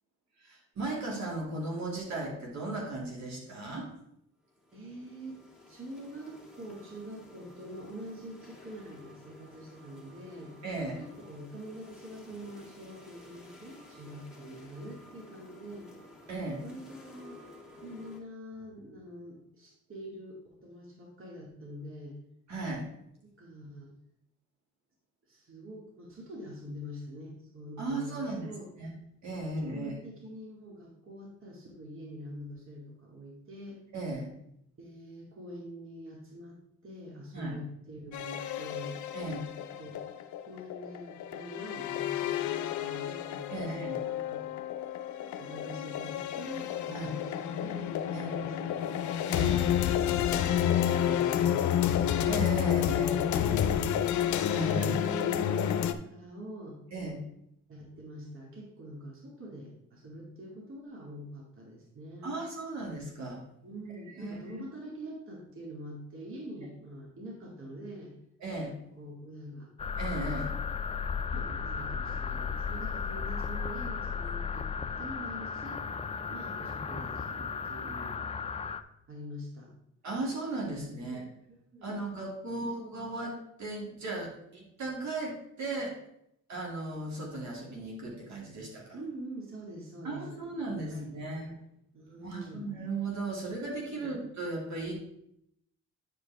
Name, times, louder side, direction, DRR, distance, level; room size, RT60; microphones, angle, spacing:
voice 1, 0.4-3.9 10.6-11.0 16.3-16.6 22.5-22.9 27.8-28.5 28.8-28.9 29.2-29.9 33.9-34.3 37.3-37.6 39.1-39.5 43.5-44.0 46.9-47.1 48.1-48.5 49.3-49.6 52.3-53.8 54.5-54.9 56.9-57.2 62.2-63.4 64.2-64.6 68.4-68.7 70.0-70.6 80.0-81.3 81.8-85.9 86.5-89.0 90.0-91.5 92.2-94.9, right 2 dB, 65° right, -3 dB, 2.6 m, -36 dB
sound 1, 4.4-18.2, left 2 dB, 5° right, 2.1 m, -53 dB
voice 2, 4.7-10.5 11.0-15.9 16.6-17.4 17.7-22.2 23.4-23.9 25.3-28.7 29.5-33.8 34.8-39.0 39.8-40.0 40.4-44.4 45.2-48.9 49.6-52.2 52.7-54.1 54.5-56.8 57.7-62.3 63.6-68.1 69.0-69.7 71.3-74.7 75.0-75.8 76.3-78.2 79.1-79.7 81.0-82.0 82.5-83.0 88.9-90.4 90.7-91.5 91.9-92.7 93.9-94.2, equal, 45° right, -3 dB, 2.2 m, -45 dB
sound 2, 38.1-55.9, left 10 dB, 70° left, 0.6 m, -30 dB
sound 3, 69.8-78.8, left 5 dB, 20° left, 0.4 m, -35 dB
9.7 x 5.1 x 3.5 m, 0.77 s
cardioid pair, 90°, 30 cm